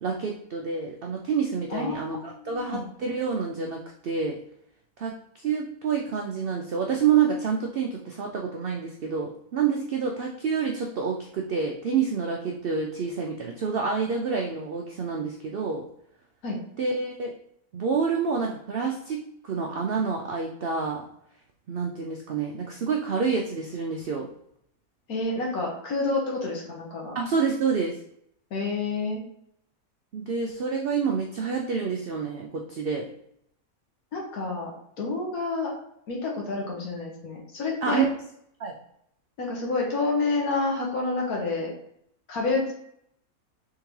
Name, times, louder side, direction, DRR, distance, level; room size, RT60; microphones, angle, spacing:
voice 1, 0.0-4.4 5.0-15.9 16.8-17.3 17.7-21.0 21.7-24.3 27.1-28.0 30.1-33.1 37.8-38.0 38.6-38.7, right 5 dB, 85° right, 0 dB, 0.5 m, -28 dB
voice 2, 1.7-2.8 16.4-16.6 25.1-27.1 28.5-29.2 34.1-34.7 35.0-35.7 36.1-38.0 39.4-41.7 42.3-42.7, left 3 dB, 75° left, -1 dB, 1.6 m, -29 dB
3.6 x 3.6 x 3.1 m, 0.72 s
omnidirectional pair, 1.6 m